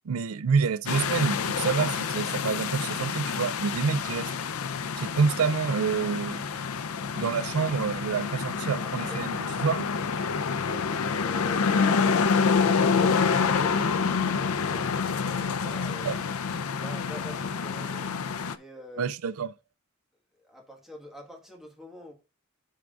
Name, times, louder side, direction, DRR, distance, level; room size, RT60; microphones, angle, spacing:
voice 1, 0.1-4.3 5.0-6.4 7.2-9.4 9.6-9.9 16.0-16.2 19.0-19.5, right 5 dB, 75° right, 0.4 m, -27 dB
sound 1, 0.9-18.6, left 5 dB, 75° left, 0.5 m, -27 dB
voice 2, 8.4-9.9 10.2-11.8 12.3-16.1 16.7-18.1 18.5-19.2 20.4-22.1, left 1 dB, ahead, 1.6 m, -46 dB
14.0 x 4.7 x 2.5 m
head